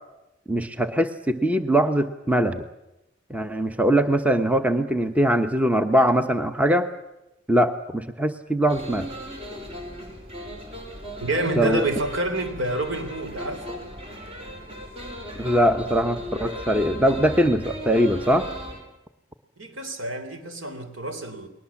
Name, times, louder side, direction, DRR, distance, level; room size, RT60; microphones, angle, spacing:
voice 1, 0.5-2.6 3.3-6.9 7.5-9.1 11.6-11.8 15.4-18.5, equal, 5° right, 1.0 m, -21 dB
sound 1, 8.7-18.8, equal, 30° right, 5.3 m, -37 dB
voice 2, 11.2-13.8 19.6-21.5, right 2 dB, 80° right, 3.6 m, -28 dB
29.5 x 20.5 x 7.2 m
head